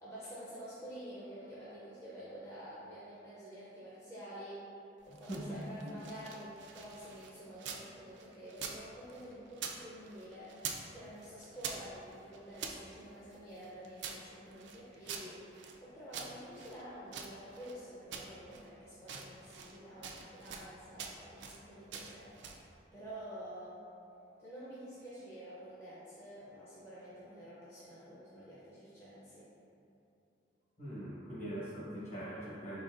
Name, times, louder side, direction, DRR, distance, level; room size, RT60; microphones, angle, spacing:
voice 1, 0.0-4.6 5.0-10.6 10.9-15.4 15.8-22.4 22.9-23.8 24.4-29.5, equal, 15° left, -10 dB, 0.5 m, -49 dB
sound 1, 5.0-7.9 8.2-9.8 10.0-10.9 11.2-12.8 13.3-15.8 16.1-17.8 18.1-18.7 19.0-19.8 20.0-20.7 21.0-21.6 21.9-22.7, right 6 dB, 75° right, 0.4 m, -45 dB
voice 2, 5.3-6.0 30.8-32.8, right 1 dB, 40° left, -8 dB, 1.2 m, -42 dB
4.2 x 4.0 x 2.4 m, 2.7 s
head